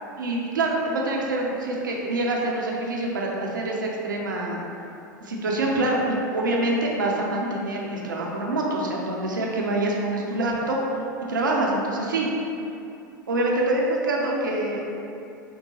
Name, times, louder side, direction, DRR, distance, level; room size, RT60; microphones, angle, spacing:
voice 1, 0.2-4.6 5.2-10.8 11.3-12.3 13.3-14.8, right 2 dB, 70° right, -2 dB, 0.5 m, -25 dB
4.3 x 2.1 x 3.1 m, 2.7 s
figure-of-eight pair, 85°, 11 cm